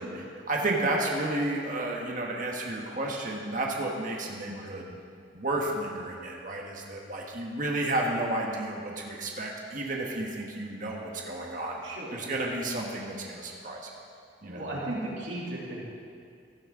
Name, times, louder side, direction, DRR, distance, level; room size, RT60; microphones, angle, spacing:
voice 1, 0.0-5.0 5.3-11.8 12.1-13.9 14.4-14.7, right 2 dB, 45° right, -1 dB, 1.4 m, -32 dB
voice 2, 11.8-12.2 14.4-15.8, right 1 dB, 90° right, -5 dB, 3.2 m, -36 dB
16.0 x 12.0 x 3.8 m, 2.3 s
head